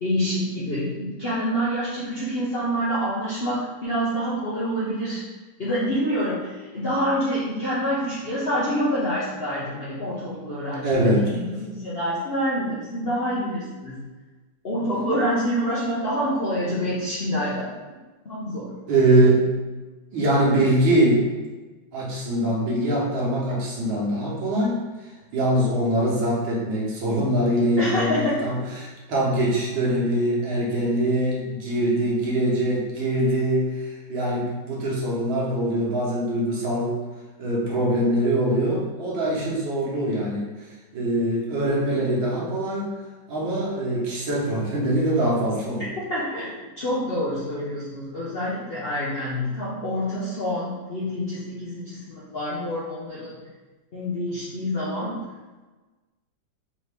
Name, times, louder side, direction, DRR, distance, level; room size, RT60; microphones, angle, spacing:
voice 1, 0.0-5.2 5.6-14.0 14.6-17.7 18.2-18.7 27.8-28.4 46.1-53.3 53.9-55.2, equal, 75° left, -8 dB, 0.5 m, -27 dB
voice 2, 10.8-11.3 18.9-19.5 20.1-21.3 21.9-37.0 37.4-40.7 40.9-42.9 43.3-46.0, right 1 dB, 75° right, -4 dB, 1.7 m, -23 dB
4.5 x 2.8 x 3.3 m, 1.2 s
omnidirectional pair, 2.1 m